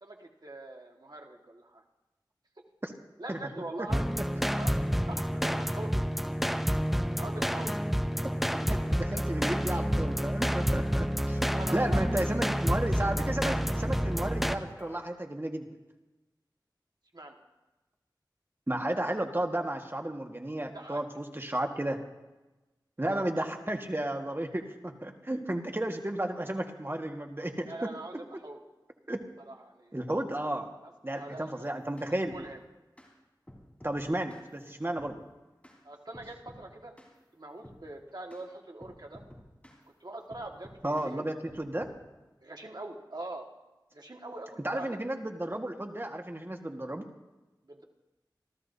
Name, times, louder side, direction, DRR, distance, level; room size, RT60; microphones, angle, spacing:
voice 1, 0.0-1.8 3.2-4.1 4.5-5.9 7.2-7.7 11.4-12.0 17.1-17.4 20.7-21.0 23.0-23.2 27.7-28.6 29.4-29.9 30.8-31.5 32.1-32.6 35.8-36.9 37.3-39.2 40.0-41.6 42.4-43.5 43.9-45.0 47.6-47.8, right 2 dB, 60° right, 2 dB, 1.7 m, -43 dB
sound 1, 3.9-14.6, equal, ahead, 0.7 m, -29 dB
sound 2, 8.1-15.0, left 1 dB, 35° left, 6.4 m, -51 dB
voice 2, 8.7-11.4 11.7-15.7 18.7-22.0 23.0-27.9 29.1-29.2 29.9-30.7 31.0-32.5 33.8-35.2 40.8-41.9 44.6-47.1, right 1 dB, 30° right, 3 dB, 1.6 m, -33 dB
sound 3, 31.6-32.5 33.0-33.1 33.5-34.5 35.0-35.2 35.6-35.8 36.1-36.7 37.0-37.2 37.6-37.8 38.3-38.4 38.8-39.8 40.3-41.1 41.5-42.0, equal, 15° left, 4.4 m, -52 dB
27.0 x 13.5 x 2.7 m, 1.1 s
wide cardioid pair, 40°, 8 cm